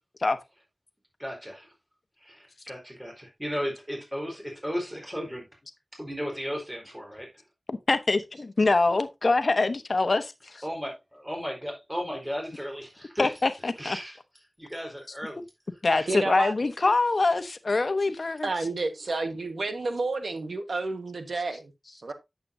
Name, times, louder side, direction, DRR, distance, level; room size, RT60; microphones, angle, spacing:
voice 1, 1.2-1.7 2.2-5.5 5.9-7.4 10.6-13.3 13.8-14.2 14.6-15.5 15.9-16.1, equal, 10° right, 4.1 m, -35 dB
voice 2, 7.7-10.6 13.2-14.0 15.8-18.5, left 3 dB, 65° left, 1.1 m, -24 dB
voice 3, 16.1-16.5 18.4-22.1, right 3 dB, 85° right, 1.4 m, -31 dB
9.0 x 7.6 x 2.7 m
wide cardioid pair, 45°, 0 cm